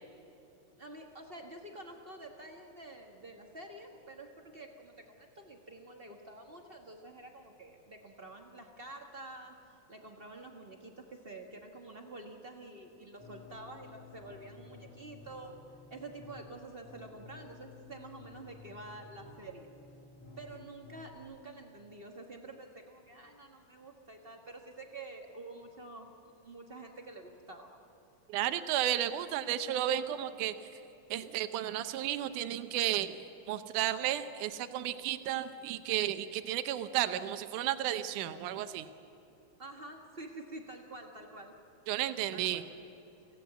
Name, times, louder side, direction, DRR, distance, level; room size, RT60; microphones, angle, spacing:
voice 1, 0.8-9.5 9.9-15.6 15.9-19.7 20.4-27.8 39.6-41.5 42.3-42.7, right 2 dB, 70° right, 3 dB, 0.5 m, -48 dB
sound 1, 13.2-21.2, left 4 dB, 85° left, 5.9 m, -54 dB
voice 2, 28.3-30.5 31.1-33.1 33.5-38.9 41.9-42.6, right 12 dB, 85° right, 11 dB, 2.3 m, -33 dB
26.0 x 16.5 x 8.0 m, 2.9 s
omnidirectional pair, 3.5 m